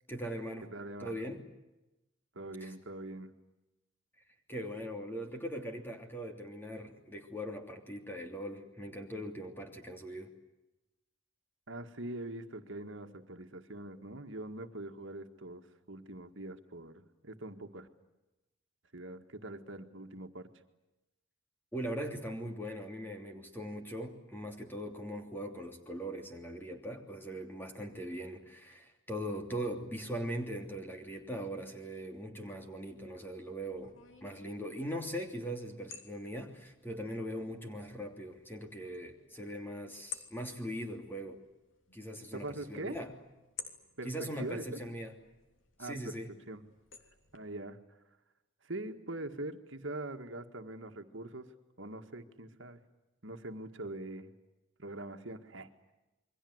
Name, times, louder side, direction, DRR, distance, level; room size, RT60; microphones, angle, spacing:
voice 1, 0.1-0.7 1.0-1.4 2.6-2.7 4.5-10.3 21.7-33.9 34.2-41.4 41.9-43.1 44.0-45.1 45.8-46.3, equal, 10° left, 4 dB, 3.1 m, -40 dB
voice 2, 0.7-1.1 2.4-3.3 11.7-17.9 18.9-20.5 42.3-43.0 44.0-44.8 45.8-46.2 46.5-46.6 47.3-47.8 48.6-51.5 51.8-52.8 53.2-54.3 54.8-55.9, right 2 dB, 65° right, 6 dB, 1.9 m, -43 dB
sound 1, 32.8-47.4, left 7 dB, 70° left, 3.1 m, -54 dB
28.0 x 23.0 x 8.0 m, 0.99 s
head